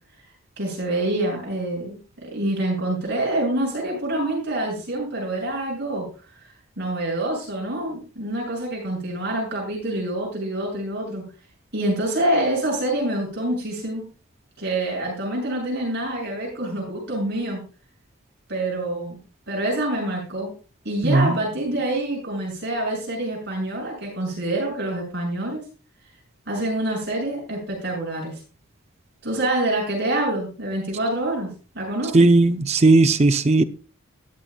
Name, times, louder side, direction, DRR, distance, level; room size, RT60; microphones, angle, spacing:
voice 1, 0.6-6.1 6.8-11.2 11.7-14.0 14.6-17.6 18.5-19.2 19.5-20.5 20.8-25.6 26.5-28.4 29.2-31.5 31.7-32.3, right 1 dB, 55° right, 7.3 m, -26 dB
voice 2, 32.1-33.6, right 2 dB, 30° right, 0.5 m, -16 dB
21.5 x 7.5 x 2.3 m
head